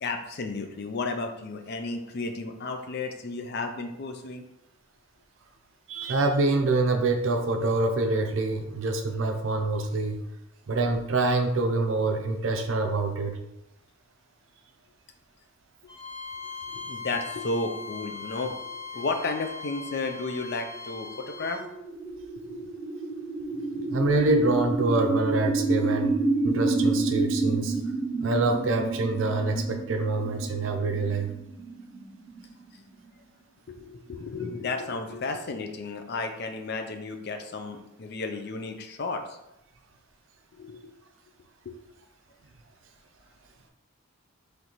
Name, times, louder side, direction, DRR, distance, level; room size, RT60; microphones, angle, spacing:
voice 1, 0.0-4.4 16.7-21.6 22.4-22.7 23.5-23.9 33.7-39.4 40.6-40.9 41.7-41.8, left 3 dB, 50° left, 5 dB, 0.4 m, -33 dB
voice 2, 5.9-10.2 10.7-13.4 23.9-26.1 26.4-27.7 28.2-31.3, right 2 dB, 60° right, 5 dB, 0.5 m, -25 dB
Bowed string instrument, 15.9-21.6, left 4 dB, 20° left, 0.7 m, -40 dB
sound 1, 20.9-33.0, right 3 dB, 20° right, 1.2 m, -29 dB
3.9 x 3.2 x 3.0 m, 0.89 s
head